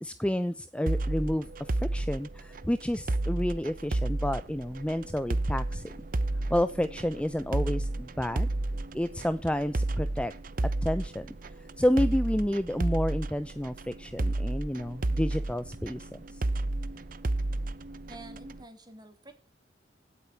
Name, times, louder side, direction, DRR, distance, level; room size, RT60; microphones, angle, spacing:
voice 1, 0.0-5.9 6.5-8.5 8.9-10.3 10.8-11.3 11.8-16.4, equal, 5° left, 11 dB, 0.7 m, -30 dB
sound 1, 0.9-18.6, right 2 dB, 50° right, 0.8 m, -32 dB
voice 2, 18.1-19.3, right 2 dB, 25° right, 6 dB, 3.5 m, -48 dB
17.0 x 8.1 x 8.5 m, 0.37 s
head